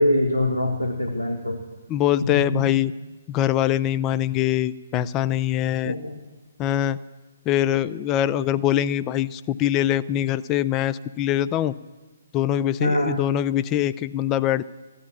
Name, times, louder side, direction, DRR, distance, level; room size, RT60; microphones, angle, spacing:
voice 1, 0.0-1.6 2.2-2.6 5.8-6.1 12.8-13.2, left 1 dB, 90° left, 2 dB, 1.5 m, -23 dB
voice 2, 1.9-2.9 3.3-6.0 6.6-7.0 7.5-11.7 12.3-14.6, left 12 dB, 20° left, 15 dB, 0.4 m, -23 dB
15.5 x 11.5 x 7.3 m, 1.2 s
figure-of-eight pair, 130°, 0 cm